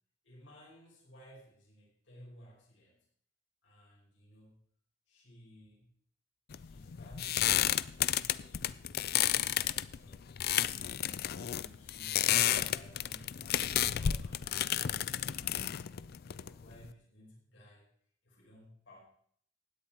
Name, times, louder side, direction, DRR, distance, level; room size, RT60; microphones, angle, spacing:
voice 1, 0.2-3.0 3.6-4.6 5.1-5.9 6.6-14.7 15.1-15.8 16.2-17.9 18.2-19.0, equal, 70° left, -4 dB, 5.3 m, -56 dB
sound 1, 6.5-16.9, left 11 dB, 55° left, 0.4 m, -32 dB
16.5 x 9.8 x 4.4 m, 0.63 s
head